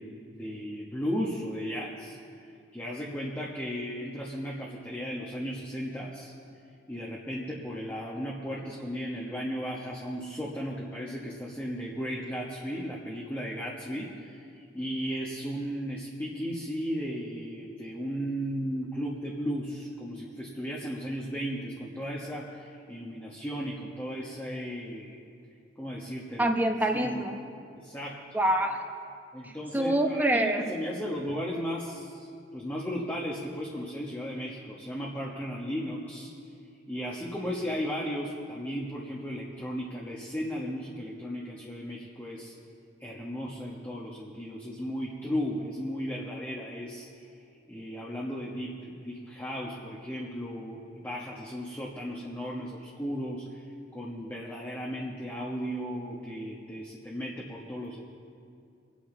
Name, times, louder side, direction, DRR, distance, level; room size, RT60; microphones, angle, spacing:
voice 1, 0.0-2.2 2.7-6.3 6.9-25.2 25.8-26.5 27.0-27.2 27.8-28.2 29.3-36.3 36.9-42.5 43.0-47.1 47.7-53.4 53.9-58.0, equal, 10° left, -4 dB, 1.2 m, -35 dB
voice 2, 26.4-27.4 28.3-28.8 29.4-30.6, right 1 dB, 10° right, 4 dB, 1.0 m, -26 dB
25.0 x 8.9 x 3.9 m, 2.4 s
head